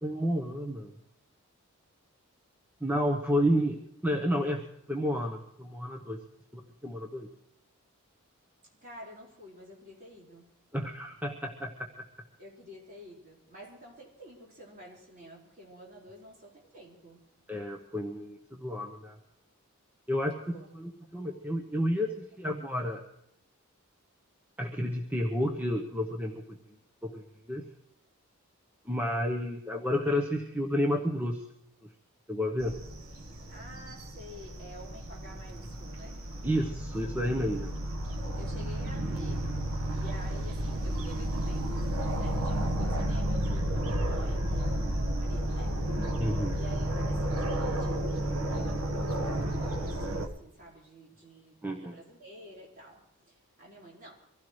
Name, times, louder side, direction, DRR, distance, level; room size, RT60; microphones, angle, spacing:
voice 1, 0.0-0.9 2.8-3.8 4.0-6.2 6.5-7.3 10.7-11.7 17.5-19.2 20.1-23.0 24.6-26.4 27.0-27.2 27.5-27.6 28.9-31.4 32.3-32.7 36.4-37.7 46.2-46.6 51.6-51.9, equal, 10° right, 1 dB, 0.9 m, -31 dB
voice 2, 8.8-10.5 12.4-17.2 20.5-20.7 33.5-36.2 38.4-39.5 39.9-41.7 42.2-46.1 46.5-54.1, equal, 40° right, -4 dB, 4.9 m, -49 dB
sound 1, 32.6-50.3, right 1 dB, 75° right, 1.4 m, -32 dB
24.5 x 16.0 x 3.2 m, 0.79 s
head